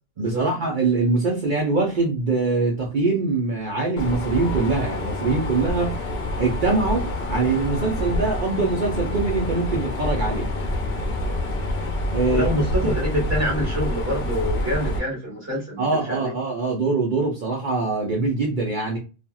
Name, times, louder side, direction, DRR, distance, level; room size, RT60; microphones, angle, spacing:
voice 1, 0.2-6.0 6.4-10.5 12.1-12.5 15.8-19.0, right 3 dB, 55° right, 0.7 m, -23 dB
Mechanisms, 4.0-15.0, left 1 dB, 70° left, 0.9 m, -27 dB
voice 2, 12.3-16.3, equal, 15° right, 1.0 m, -26 dB
2.7 x 2.4 x 2.3 m
omnidirectional pair, 1.1 m